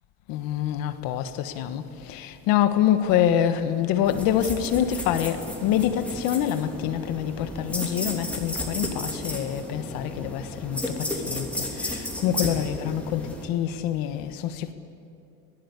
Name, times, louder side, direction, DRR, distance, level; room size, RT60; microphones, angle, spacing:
voice 1, 0.3-14.7, left 10 dB, 65° left, 1.5 m, -26 dB
sound 1, 4.0-13.4, left 1 dB, 5° left, 3.1 m, -33 dB
24.5 x 19.5 x 8.3 m
cardioid pair, 160°, 38 cm